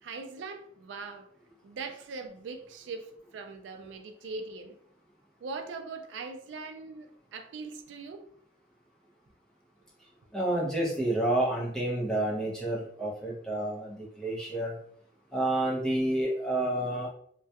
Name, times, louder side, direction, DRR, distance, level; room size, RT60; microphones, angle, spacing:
voice 1, 0.0-1.3 1.6-4.8 5.4-8.2, right 4 dB, 80° right, 5 dB, 0.3 m, -41 dB
voice 2, 10.3-14.7 15.3-17.1, right 1 dB, 5° left, -5 dB, 0.6 m, -29 dB
2.3 x 2.1 x 2.7 m, 0.64 s
head